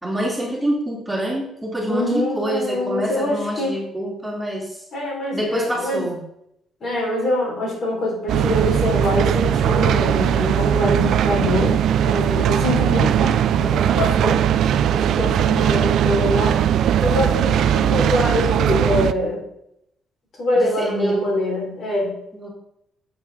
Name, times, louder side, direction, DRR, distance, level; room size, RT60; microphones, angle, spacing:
voice 1, 0.0-4.8 5.3-6.3 20.5-21.2 22.3-22.5, right 1 dB, 5° right, -3 dB, 3.0 m, -26 dB
voice 2, 1.9-3.7 4.9-6.1 6.8-14.4 14.9-16.6 17.0-19.4 20.4-22.2, left 1 dB, 55° left, -2 dB, 3.9 m, -24 dB
sound 1, 8.3-19.1, right 9 dB, 75° right, 0.4 m, -19 dB
8.7 x 7.6 x 3.6 m, 0.75 s
cardioid pair, 90°, 0 cm